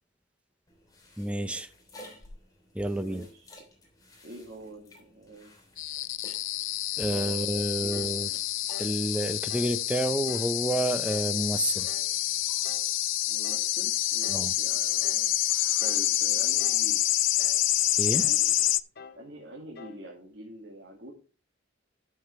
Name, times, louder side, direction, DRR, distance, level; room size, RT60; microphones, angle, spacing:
sound 1, 0.7-12.7, left 1 dB, 20° left, 3.1 m, -54 dB
voice 1, 1.2-1.7 2.7-3.2 7.0-8.3 8.8-11.9 14.3-14.5 18.0-18.3, right 1 dB, 5° right, 0.7 m, -29 dB
voice 2, 2.9-3.5 4.2-5.5 7.1-7.5 7.8-8.1 13.3-15.3 15.8-17.0 18.2-18.7 19.2-21.1, right 1 dB, 55° right, 2.1 m, -45 dB
sound 2, 5.8-18.8, left 15 dB, 70° left, 0.5 m, -27 dB
sound 3, 7.9-8.2 8.7-9.0 9.5-9.8 10.3-10.6 11.1-11.4 11.8-12.2 12.6-12.9 13.4-13.7 14.2-14.5 15.0-15.3 15.8-16.1 16.6-16.9 17.4-17.7 18.2-18.5 19.0-19.3 19.8-20.1, left 5 dB, 50° left, 0.9 m, -46 dB
11.5 x 7.1 x 3.2 m
head